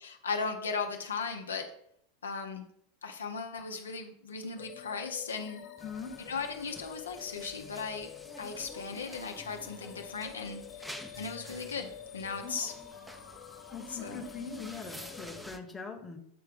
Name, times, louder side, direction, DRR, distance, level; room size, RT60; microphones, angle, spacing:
voice 1, 0.0-1.7 2.2-2.7 3.0-5.6 6.3-8.1 8.4-10.6 10.9-12.7 13.9-14.2, left 5 dB, 85° left, 4 dB, 0.7 m, -37 dB
sound 1, 4.6-15.4, left 10 dB, 50° left, 1.3 m, -48 dB
voice 2, 5.8-6.1 12.4-12.5 13.7-16.2, left 5 dB, 15° left, 4 dB, 1.1 m, -42 dB
sound 2, 5.8-15.6, equal, 5° right, 0.6 m, -50 dB
7.7 x 3.2 x 5.2 m, 0.70 s
hypercardioid pair, 90°, 0 cm